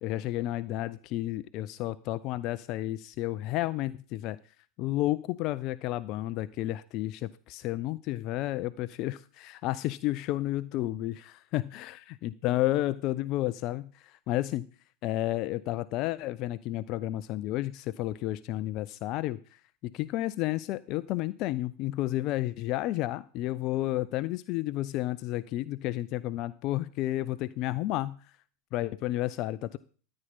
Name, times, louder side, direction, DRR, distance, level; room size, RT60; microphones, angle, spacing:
voice 1, 0.0-4.4 4.8-11.9 12.2-14.7 15.0-28.2 28.7-29.8, left 15 dB, 40° left, 16 dB, 0.4 m, -31 dB
14.0 x 8.7 x 4.1 m, 0.40 s
figure-of-eight pair, 90°, 0 cm